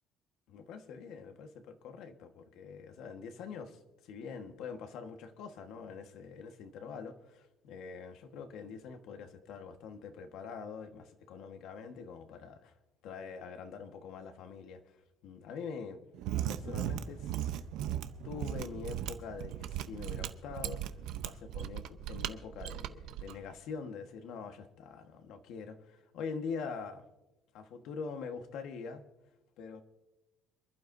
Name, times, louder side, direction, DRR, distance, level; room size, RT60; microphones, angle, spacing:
voice 1, 0.5-12.7 13.0-14.9 15.2-16.0 16.5-17.6 18.2-20.9 21.2-27.0 27.5-29.0 29.6-29.8, left 5 dB, 70° left, 1.4 m, -44 dB
Mechanisms, 16.1-23.3, right 11 dB, 75° right, 0.7 m, -37 dB
27.0 x 12.0 x 2.6 m
cardioid pair, 155°, 0 cm